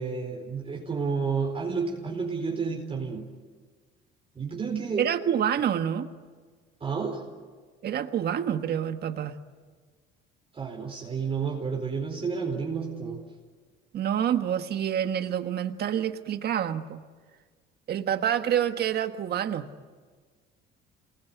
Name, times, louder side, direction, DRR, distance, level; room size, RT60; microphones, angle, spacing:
voice 1, 0.0-3.3 4.3-5.1 6.8-7.2 10.5-13.2, right 5 dB, 30° right, 0 dB, 4.4 m, -30 dB
voice 2, 5.0-6.1 7.8-9.3 13.9-17.0 17.9-19.7, right 9 dB, 50° right, 8 dB, 1.5 m, -27 dB
27.5 x 20.5 x 9.4 m, 1.5 s
cardioid pair, 105°, 20 cm